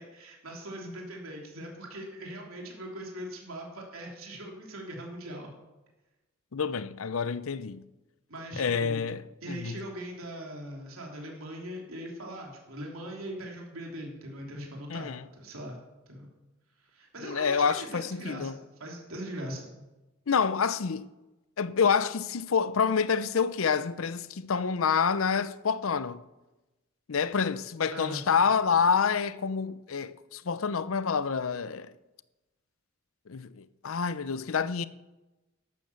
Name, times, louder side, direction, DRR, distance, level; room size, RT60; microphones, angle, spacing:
voice 1, 0.0-5.5 8.3-9.0 9.4-15.8 16.1-16.3 16.8-18.5 18.8-19.7 27.9-28.2, right 1 dB, 80° right, 3.0 m, -40 dB
voice 2, 6.5-7.8 8.6-9.8 14.9-15.2 17.2-18.6 20.3-21.1 21.6-26.2 27.1-31.9 33.3-34.9, left 6 dB, 75° left, 0.6 m, -28 dB
12.0 x 12.0 x 7.0 m
head